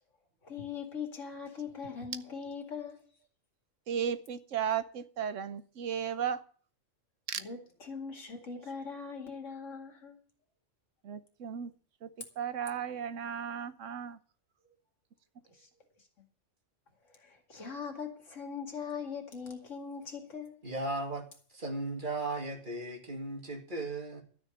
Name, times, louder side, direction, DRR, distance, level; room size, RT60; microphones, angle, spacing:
voice 1, 0.4-3.0 7.4-10.2 17.2-20.6, left 6 dB, 80° left, 2.7 m, -41 dB
voice 2, 3.9-6.4 7.3-7.4 11.0-11.7 12.0-12.1 12.4-14.2, right 8 dB, 90° right, 1.3 m, -35 dB
voice 3, 20.6-24.2, right 2 dB, 40° right, 2.4 m, -36 dB
12.5 x 6.4 x 9.0 m
omnidirectional pair, 1.3 m